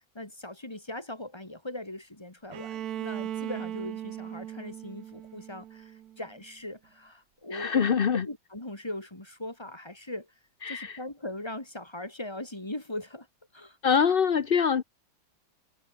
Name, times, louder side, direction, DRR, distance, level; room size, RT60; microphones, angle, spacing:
voice 1, 0.1-10.3 10.7-13.3 13.5-13.8, left 1 dB, 15° left, 3.2 m, -40 dB
Bowed string instrument, 2.5-6.4, right 11 dB, 60° right, 1.2 m, -38 dB
voice 2, 7.5-8.3 10.6-11.0 13.8-14.8, left 7 dB, 45° left, 0.7 m, -24 dB
omnidirectional pair, 2.1 m